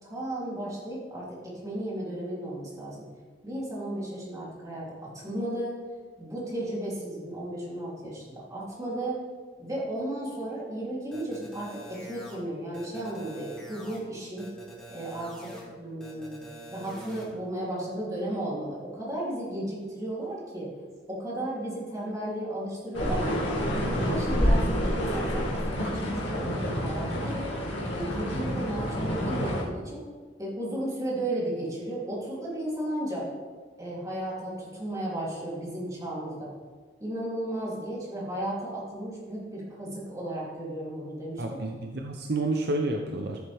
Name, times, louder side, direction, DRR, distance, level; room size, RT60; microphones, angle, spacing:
voice 1, 0.0-3.0 3.4-5.8 6.2-9.2 9.6-14.5 14.9-16.4 16.7-20.7 21.1-23.4 23.7-27.5 27.9-30.0 30.4-33.3 33.8-36.5 37.0-41.6, right 1 dB, 20° right, -6 dB, 3.2 m, -34 dB
sound 1, 11.1-12.3 12.7-14.0 14.4-15.6 16.0-17.2, right 1 dB, 5° left, 2.2 m, -45 dB
sound 2, 22.9-29.6, equal, 75° left, 2.4 m, -28 dB
voice 2, 41.4-43.4, right 2 dB, 60° right, 3 dB, 0.7 m, -29 dB
14.0 x 7.5 x 3.5 m, 1.5 s
head